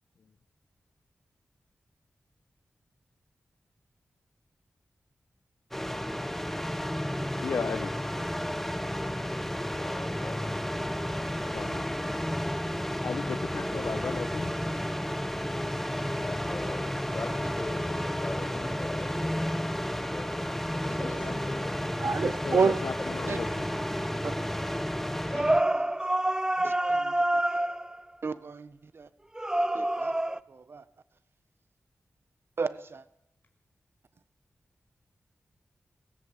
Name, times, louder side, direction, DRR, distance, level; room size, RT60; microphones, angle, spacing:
sound 1, 5.7-25.6, equal, 5° left, 1.4 m, -32 dB
voice 1, 7.4-7.9 11.5-12.2 13.0-14.5 21.2-21.3 22.0-23.7, left 5 dB, 80° left, 1.2 m, -36 dB
voice 2, 9.8-10.6 11.4-11.6 13.2-13.4 16.1-22.0 23.0-23.4 25.3-25.8 26.6-27.0, left 2 dB, 40° left, 6.8 m, -41 dB
voice 3, 22.0-22.8 23.3-23.6 24.2-24.7 26.6-27.1 28.2-29.1 29.7-30.2 30.5-30.8 32.6-33.0, right 5 dB, 60° right, 1.3 m, -31 dB
sound 2, 25.3-28.0 29.3-30.4, right 1 dB, 15° right, 0.8 m, -27 dB
23.5 x 17.0 x 8.3 m
wide cardioid pair, 85°, 4 cm